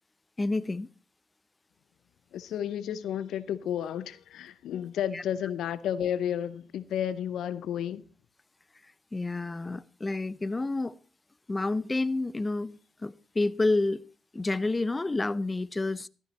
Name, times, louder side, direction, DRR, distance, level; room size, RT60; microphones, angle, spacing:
voice 1, 0.4-0.9 5.1-5.2 9.1-11.0 11.5-14.0 14.3-16.1, left 2 dB, 25° left, 0.6 m, -29 dB
voice 2, 2.3-8.0, left 9 dB, 75° left, 0.6 m, -32 dB
13.0 x 12.5 x 4.1 m
hypercardioid pair, 45°, 0 cm